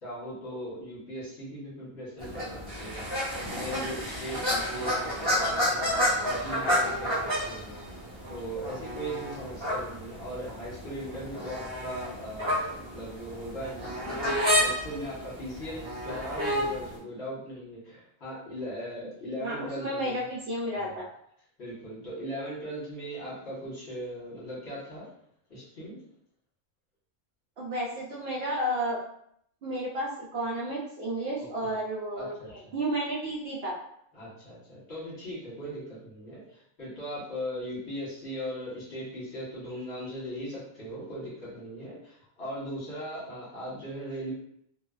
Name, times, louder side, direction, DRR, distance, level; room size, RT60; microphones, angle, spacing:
voice 1, 0.0-3.1 3.5-7.8 8.3-20.2 20.8-21.0 21.6-25.1 25.5-26.0 31.4-31.7 32.1-32.7 34.1-44.3, equal, 60° left, -7 dB, 1.3 m, -39 dB
sound 1, 2.2-17.0, equal, 10° right, 1.0 m, -30 dB
voice 2, 19.4-21.0 27.6-29.0 29.6-33.7, right 1 dB, 65° right, -4 dB, 0.7 m, -32 dB
2.4 x 2.3 x 2.3 m, 0.70 s
omnidirectional pair, 1.3 m